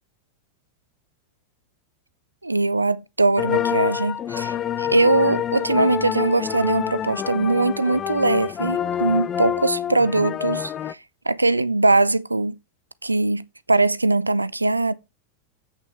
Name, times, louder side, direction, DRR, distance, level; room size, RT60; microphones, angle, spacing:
voice 1, 2.4-11.0 11.3-12.6 13.0-14.9, right 2 dB, 80° right, 0.5 m, -21 dB
sound 1, 3.4-10.9, left 9 dB, 25° left, 0.4 m, -27 dB
8.4 x 6.0 x 4.3 m
figure-of-eight pair, 90°, 0 cm